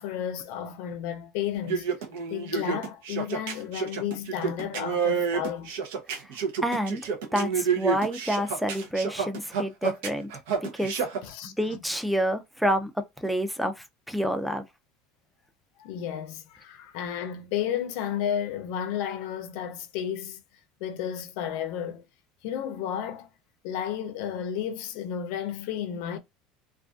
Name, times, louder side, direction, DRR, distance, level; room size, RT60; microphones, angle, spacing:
voice 1, 0.0-1.9 2.3-5.7 11.2-11.8 15.8-20.4 20.8-22.0 22.4-23.3 23.6-26.2, left 9 dB, 65° left, 0.5 m, -32 dB
sound 1, 1.6-11.2, right 6 dB, 90° right, 0.7 m, -29 dB
voice 2, 6.6-7.0 7.3-10.3 10.7-10.9 11.4-12.9 13.2-14.6, equal, ahead, 0.3 m, -28 dB
2.4 x 2.4 x 2.3 m
cardioid pair, 155°, 0 cm